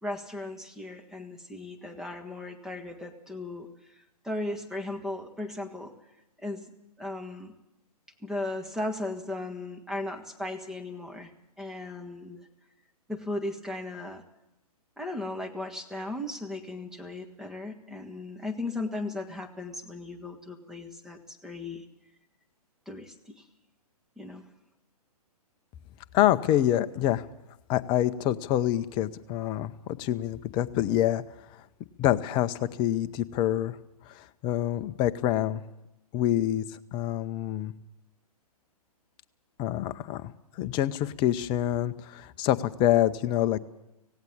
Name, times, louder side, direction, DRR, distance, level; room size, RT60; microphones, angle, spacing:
voice 1, 0.0-3.7 4.2-5.9 6.4-6.7 7.0-7.5 8.2-11.3 11.6-12.5 13.1-14.2 15.0-21.8 22.9-23.3 24.2-24.4, left 2 dB, ahead, 3 dB, 1.6 m, -36 dB
voice 2, 26.1-27.2 27.7-31.2 32.0-33.8 34.1-35.6 36.1-36.6 36.9-37.7 39.6-40.3 40.6-43.6, left 12 dB, 25° left, 13 dB, 0.7 m, -26 dB
17.5 x 17.0 x 8.7 m, 0.91 s
figure-of-eight pair, 125°, 20 cm